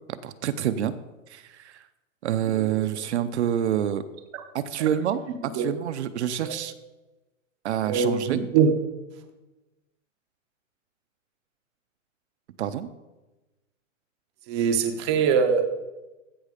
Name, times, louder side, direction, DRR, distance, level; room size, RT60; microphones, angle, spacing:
voice 1, 0.1-0.9 1.3-1.8 2.2-4.0 4.5-5.2 5.5-6.7 7.6-8.4 12.6-12.9, right 10 dB, 55° right, 0.7 m, -27 dB
voice 2, 2.5-3.0 4.3-4.4 5.5-5.7 6.4-6.5 7.8-8.7 14.5-15.7, right 6 dB, 20° right, 0.6 m, -23 dB
15.0 x 5.6 x 5.1 m
supercardioid pair, 175°, 40 cm